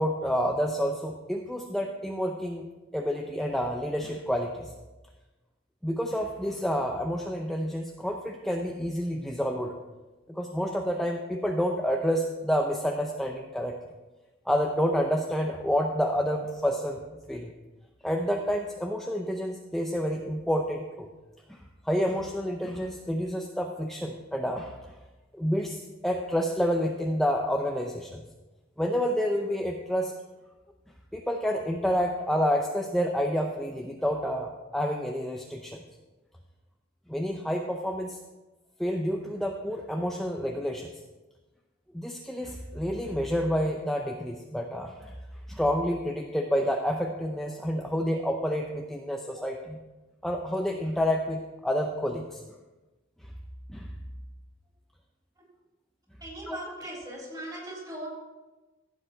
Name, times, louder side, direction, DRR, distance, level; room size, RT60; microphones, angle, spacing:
voice 1, 0.0-4.7 5.8-9.7 10.3-13.7 14.5-17.5 18.0-21.1 21.5-24.8 25.3-28.3 28.8-30.1 31.1-35.8 37.1-38.2 38.8-41.0 41.9-45.1 45.5-49.8 50.2-52.4 53.7-53.9 56.5-56.6, equal, ahead, 1 dB, 0.6 m, -29 dB
voice 2, 56.2-58.1, right 1 dB, 20° right, -3 dB, 3.9 m, -39 dB
15.5 x 7.4 x 4.4 m, 1.1 s
head